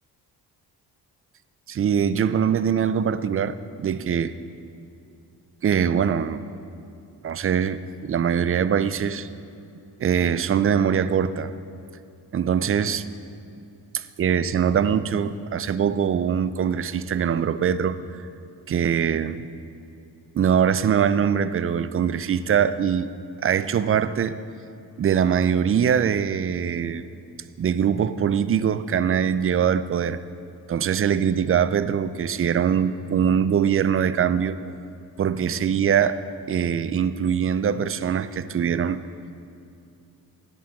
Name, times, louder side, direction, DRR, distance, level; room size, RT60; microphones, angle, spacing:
voice 1, 1.7-4.3 5.6-6.4 7.2-9.3 10.0-11.5 12.3-13.0 13.9-18.0 18.7-19.4 20.3-23.1 23.4-24.4 25.0-27.0 27.6-30.2 30.7-34.6 35.2-39.0, right 8 dB, 30° right, 14 dB, 0.5 m, -22 dB
13.5 x 10.0 x 3.7 m, 2.6 s
hypercardioid pair, 45°, 46 cm